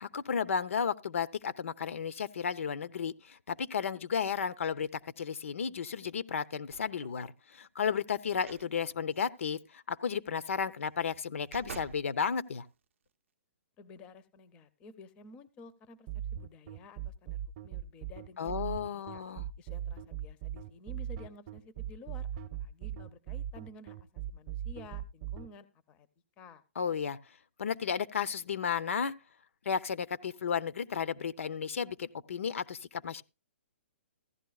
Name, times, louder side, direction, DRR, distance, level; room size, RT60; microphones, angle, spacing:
voice 1, 0.0-4.9 5.2-12.7 18.4-19.5 26.8-27.2 27.6-29.1 29.7-33.2, left 6 dB, 85° left, 0.6 m, -33 dB
sound 1, 6.7-7.2 8.3-8.7 9.1-9.2 10.8-12.1 12.7-12.8, right 7 dB, 70° right, 0.5 m, -48 dB
voice 2, 13.8-19.2 19.6-26.1 26.4-26.6, left 3 dB, 15° left, 0.5 m, -53 dB
sound 2, 16.1-25.5, right 11 dB, 25° right, 0.6 m, -39 dB
15.0 x 11.5 x 2.3 m
hypercardioid pair, 165°, 7 cm